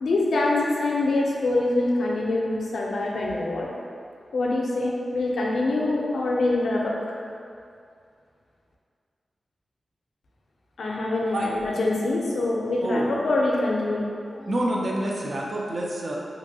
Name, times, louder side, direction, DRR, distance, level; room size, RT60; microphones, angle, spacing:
voice 1, 0.0-3.7 4.3-7.2 10.8-14.5, left 2 dB, 80° left, -3 dB, 0.4 m, -25 dB
voice 2, 12.8-13.1 14.5-16.2, right 1 dB, 50° right, -2 dB, 0.4 m, -27 dB
2.7 x 2.6 x 2.7 m, 2.4 s
wide cardioid pair, 115°, 0 cm